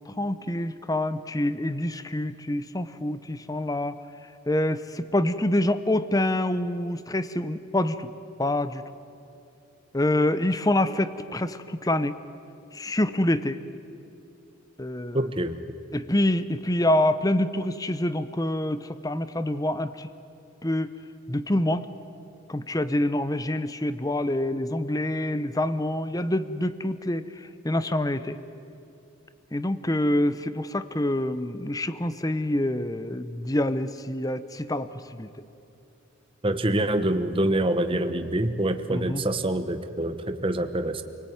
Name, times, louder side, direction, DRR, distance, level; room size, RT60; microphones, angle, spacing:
voice 1, 0.1-4.0 4.5-8.1 8.4-8.8 9.9-12.2 12.7-13.6 14.8-15.3 15.9-20.1 20.6-20.9 21.3-21.9 22.5-27.2 27.6-28.4 29.5-35.3 38.9-39.2, left 1 dB, 15° left, 13 dB, 0.8 m, -26 dB
voice 2, 15.1-15.6 36.4-41.0, right 1 dB, 25° right, 8 dB, 1.0 m, -26 dB
28.5 x 19.0 x 9.3 m, 2.8 s
head